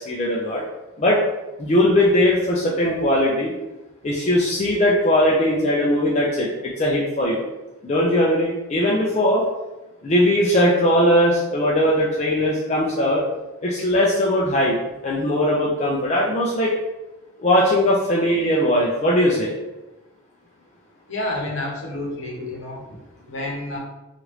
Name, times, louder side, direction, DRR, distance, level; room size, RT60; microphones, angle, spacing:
voice 1, 0.1-0.6 1.0-1.2 1.6-3.5 4.0-7.4 7.8-9.4 10.0-13.2 13.6-14.8 15.0-16.7 17.4-19.5, left 1 dB, 30° left, -4 dB, 0.3 m, -19 dB
voice 2, 21.1-22.8 23.2-23.8, left 1 dB, 60° left, -2 dB, 0.8 m, -29 dB
3.0 x 2.4 x 3.1 m, 1.0 s
head